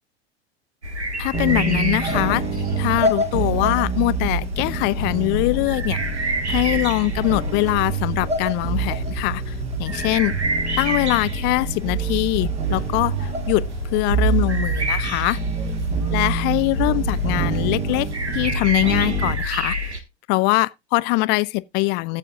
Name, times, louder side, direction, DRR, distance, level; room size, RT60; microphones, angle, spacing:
sound 1, 0.8-20.0, equal, 90° right, 1.4 m, -28 dB
voice 1, 1.2-2.4 2.8-10.3 10.8-15.4 16.1-18.1 18.3-19.9 20.3-22.2, left 23 dB, 35° left, 0.4 m, -23 dB
sound 2, 1.3-19.3, right 4 dB, 20° right, 1.6 m, -27 dB
sound 3, 12.5-18.5, right 5 dB, 35° right, 7.7 m, -43 dB
14.5 x 7.6 x 2.4 m
figure-of-eight pair, 85°, 33 cm